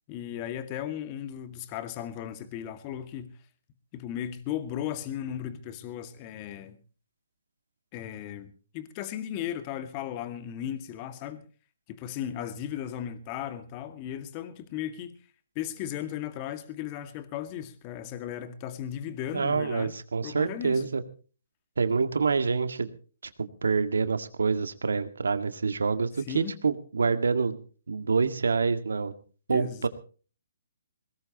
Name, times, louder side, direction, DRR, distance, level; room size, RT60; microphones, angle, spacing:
voice 1, 0.1-3.3 3.9-6.8 7.9-11.5 11.9-15.1 15.6-19.9 20.2-20.8 26.3-26.6 29.5-29.9, left 10 dB, 30° left, 2.0 m, -36 dB
voice 2, 19.3-21.0 21.8-22.9 23.4-26.1 26.3-27.6 27.9-29.2 29.5-29.9, right 4 dB, 75° right, 1.9 m, -26 dB
22.0 x 18.5 x 3.0 m
figure-of-eight pair, 135°, 0 cm